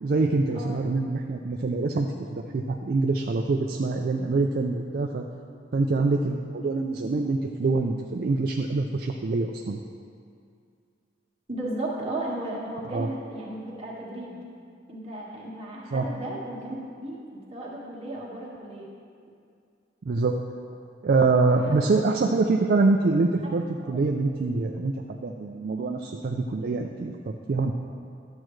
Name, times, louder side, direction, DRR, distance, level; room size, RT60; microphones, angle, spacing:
voice 1, 0.0-5.3 5.7-9.8 12.9-13.1 15.9-16.1 20.0-20.3 21.0-27.7, right 3 dB, 50° right, 2 dB, 0.4 m, -25 dB
voice 2, 11.5-14.4 14.9-16.7 17.0-17.2 17.5-18.9 21.5-21.8 23.4-23.5 23.8-24.0, right 1 dB, 30° right, -5 dB, 1.6 m, -35 dB
12.0 x 7.5 x 3.2 m, 2.3 s
head